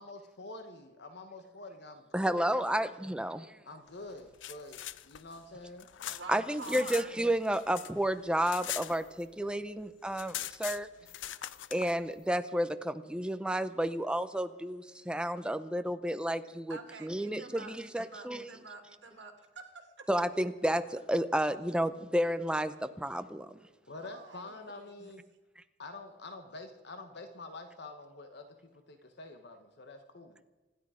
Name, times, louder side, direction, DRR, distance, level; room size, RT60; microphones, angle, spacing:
voice 1, 0.0-2.6 3.6-6.1 23.9-25.2 25.8-28.5 28.9-30.4, left 2 dB, 65° left, 7 dB, 1.1 m, -47 dB
voice 2, 2.1-3.6 6.1-10.9 11.7-18.5 20.1-23.5, right 1 dB, 5° right, 10 dB, 0.7 m, -31 dB
sound 1, 4.1-7.1 7.4-9.5 9.8-9.9 10.1-11.9, left 13 dB, 85° left, 0.5 m, -41 dB
voice 3, 6.1-7.1 16.7-19.9 24.0-24.9, right 4 dB, 70° right, 4 dB, 2.7 m, -47 dB
26.0 x 11.0 x 5.0 m, 1.2 s
head